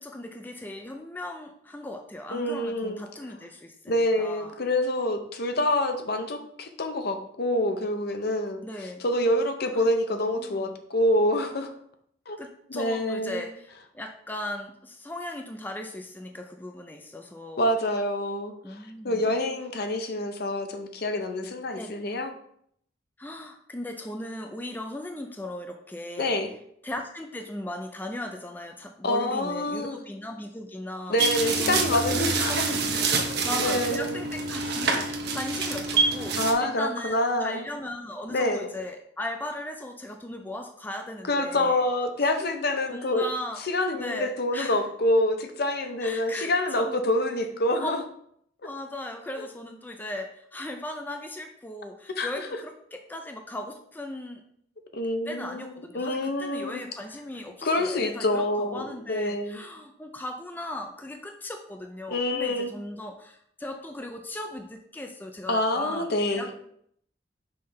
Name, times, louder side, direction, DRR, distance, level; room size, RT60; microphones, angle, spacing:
voice 1, 0.0-4.5 8.6-9.0 9.7-10.7 12.4-17.7 18.6-19.3 21.8-21.9 23.2-26.4 26.8-31.2 31.6-33.1 33.4-41.8 42.9-43.6 43.9-44.8 46.0-47.0 47.8-48.0 48.6-54.4 55.3-66.6, left 1 dB, 10° left, 4 dB, 0.4 m, -37 dB
voice 2, 2.3-3.0 3.9-11.7 12.3-12.4 12.7-13.4 17.6-18.8 19.0-22.3 26.2-26.5 29.0-30.0 31.1-32.7 33.6-34.2 36.4-37.6 38.3-38.7 41.3-43.2 43.6-48.0 49.4-49.5 52.2-52.3 54.9-56.8 57.6-59.6 62.1-62.7 65.5-66.5, left 1 dB, 55° left, 6 dB, 0.7 m, -27 dB
sound 1, 31.2-36.5, right 4 dB, 60° right, 0.8 m, -26 dB
5.6 x 3.3 x 5.5 m, 0.69 s
head